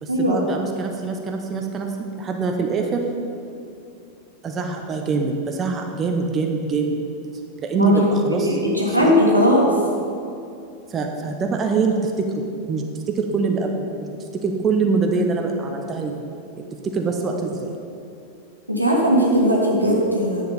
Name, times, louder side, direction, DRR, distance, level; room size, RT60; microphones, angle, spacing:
voice 1, 0.0-3.0 4.4-7.0 7.6-8.6 8.9-9.1 10.9-16.2 16.8-17.8, right 4 dB, 25° right, 3 dB, 0.8 m, -24 dB
voice 2, 8.4-9.7 18.7-20.4, equal, 90° right, -2 dB, 1.5 m, -18 dB
10.5 x 7.3 x 4.0 m, 2.5 s
figure-of-eight pair, 90°, 0 cm